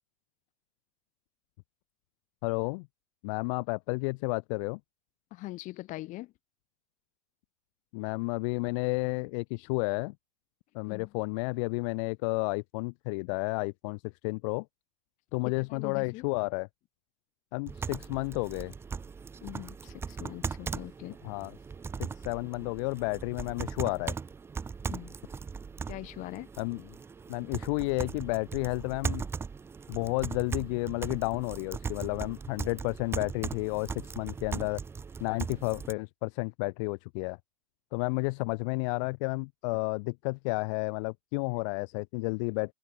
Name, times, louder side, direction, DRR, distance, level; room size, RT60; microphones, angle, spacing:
voice 1, 2.4-2.9 3.2-4.8 7.9-10.1 10.7-14.7 15.3-16.7 17.5-18.7 21.2-21.5 22.0-24.1 26.6-26.8 27.3-29.3 29.9-34.8 35.2-37.4 37.9-42.7, left 30 dB, 60° left, 1.3 m, -31 dB
voice 2, 5.3-6.3 10.9-11.1 15.6-16.3 19.4-21.2 24.9-25.2 25.9-26.5, left 18 dB, 45° left, 2.7 m, -42 dB
sound 1, 17.7-35.9, right 5 dB, 15° right, 0.6 m, -39 dB
open air
supercardioid pair, 130°, 18 cm